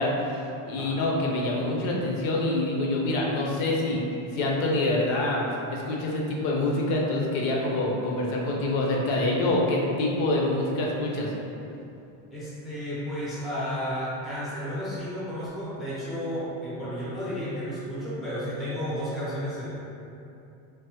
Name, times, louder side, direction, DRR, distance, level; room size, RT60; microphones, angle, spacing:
voice 1, 0.0-4.0 4.3-5.4 5.7-11.3, left 2 dB, 65° left, -2 dB, 0.6 m, -26 dB
voice 2, 12.3-19.7, equal, ahead, -10 dB, 0.5 m, -32 dB
3.3 x 2.1 x 2.8 m, 2.8 s
cardioid pair, 160°, 41 cm